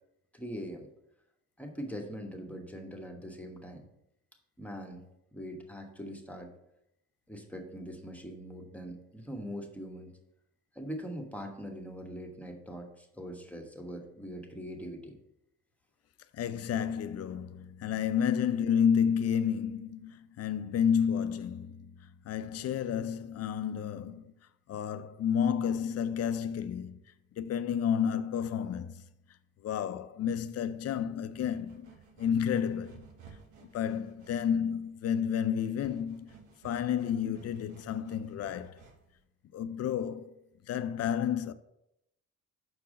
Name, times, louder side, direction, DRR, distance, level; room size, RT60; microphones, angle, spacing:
voice 1, 0.3-0.9 1.6-3.9 4.6-6.5 7.3-10.2 10.7-15.2, equal, 5° left, 1.2 m, -42 dB
voice 2, 16.3-24.3 24.7-27.0 27.4-29.0 29.6-31.9 32.2-33.0 33.7-36.3 36.6-38.8 39.5-40.3 40.7-41.5, left 8 dB, 55° left, 0.5 m, -31 dB
sound 1, 30.3-39.2, right 6 dB, 80° right, 1.3 m, -57 dB
6.2 x 4.6 x 5.0 m
cardioid pair, 90°, 30 cm